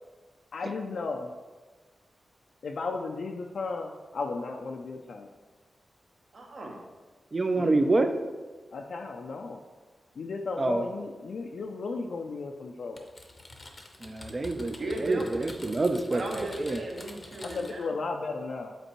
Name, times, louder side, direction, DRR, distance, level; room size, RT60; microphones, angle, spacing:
voice 1, 0.5-1.3 2.6-5.3 7.6-8.0 8.7-9.6 10.2-13.1 17.4-18.8, left 3 dB, 65° left, 2 dB, 0.4 m, -35 dB
voice 2, 6.3-6.8 14.8-15.5 16.1-18.0, right 1 dB, 50° right, 0 dB, 1.0 m, -36 dB
voice 3, 7.3-8.2 10.6-10.9 14.0-16.9, right 2 dB, 25° right, 8 dB, 0.4 m, -27 dB
Typing, 13.0-17.9, left 2 dB, 30° left, 0.6 m, -47 dB
8.0 x 4.3 x 3.0 m, 1.3 s
wide cardioid pair, 150°, 0 cm